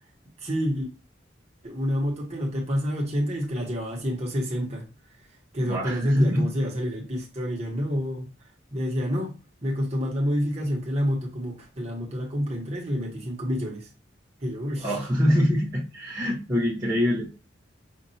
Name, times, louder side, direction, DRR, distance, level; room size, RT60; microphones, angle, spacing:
voice 1, 0.4-0.9 1.6-4.8 5.5-8.3 8.7-9.4 9.6-13.9 14.4-15.0, equal, 35° right, 1.1 m, -28 dB
voice 2, 5.6-6.5 14.8-17.3, equal, 15° right, 0.7 m, -24 dB
5.2 x 2.5 x 2.7 m
head